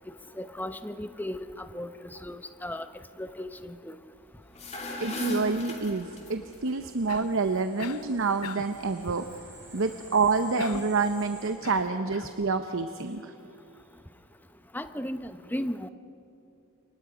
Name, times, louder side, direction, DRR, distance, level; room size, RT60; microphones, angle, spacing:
voice 1, 0.4-2.9 3.2-4.0 14.7-15.9, left 1 dB, 10° left, 10 dB, 0.7 m, -36 dB
sound 1, 4.4-6.6, left 1 dB, 30° left, 2.6 m, -34 dB
voice 2, 5.0-9.2 9.7-13.3, right 4 dB, 60° right, 8 dB, 0.8 m, -28 dB
sound 2, 6.2-11.5, right 2 dB, 10° right, 6.0 m, -52 dB
Cough, 7.1-7.4 7.8-8.1 8.4-8.8 10.6-11.0 11.6-12.4, left 6 dB, 85° left, 0.7 m, -41 dB
28.5 x 23.5 x 5.1 m, 2.9 s
head